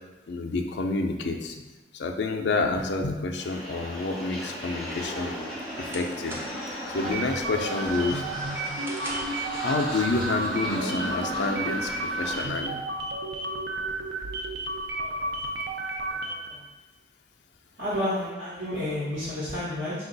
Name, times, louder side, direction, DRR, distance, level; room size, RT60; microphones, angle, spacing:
voice 1, 0.3-1.5 2.0-5.3 5.8-6.4 6.9-8.2 9.6-12.8, left 3 dB, 70° left, 3 dB, 0.4 m, -28 dB
sound 1, 3.4-12.5, equal, 5° left, 1.1 m, -35 dB
sound 2, 5.8-6.8 7.2-7.6 8.0-9.5, equal, 15° right, 0.5 m, -41 dB
sound 3, 7.0-16.6, right 2 dB, 70° right, 0.4 m, -32 dB
voice 2, 14.9-15.3 16.0-16.6 17.8-19.9, left 1 dB, 90° right, -12 dB, 1.1 m, -31 dB
4.4 x 2.4 x 3.9 m, 1.1 s
head